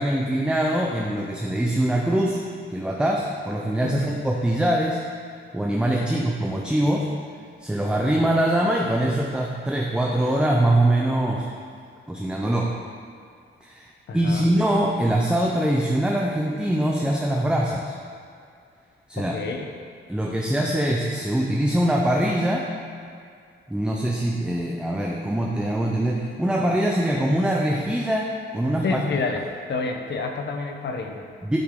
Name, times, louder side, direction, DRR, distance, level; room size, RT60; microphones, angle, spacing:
voice 1, 0.0-2.4 2.7-5.1 5.5-7.1 7.6-11.5 12.1-12.7 13.6-13.9 14.1-17.9 19.1-19.4 20.1-22.7 23.7-29.0 31.4-31.6, right 1 dB, 5° right, -1 dB, 0.6 m, -23 dB
voice 2, 3.8-4.2 6.0-6.2 14.1-14.4 19.2-19.7 28.8-29.4 29.7-31.2, left 4 dB, 60° left, 4 dB, 0.8 m, -29 dB
8.2 x 6.6 x 3.7 m, 2.2 s
cardioid pair, 110°, 21 cm